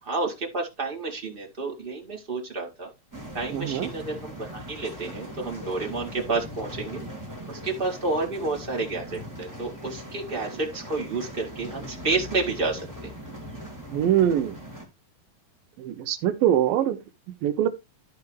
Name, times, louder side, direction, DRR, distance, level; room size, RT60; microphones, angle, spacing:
voice 1, 0.0-2.9 3.3-7.0 7.5-13.1, right 3 dB, 25° right, 1.4 m, -30 dB
sound 1, 3.1-14.8, equal, 5° right, 2.0 m, -40 dB
voice 2, 3.5-3.9 13.9-14.6 15.8-17.0 17.4-17.7, right 10 dB, 85° right, 2.6 m, -23 dB
13.5 x 4.8 x 3.1 m
omnidirectional pair, 3.9 m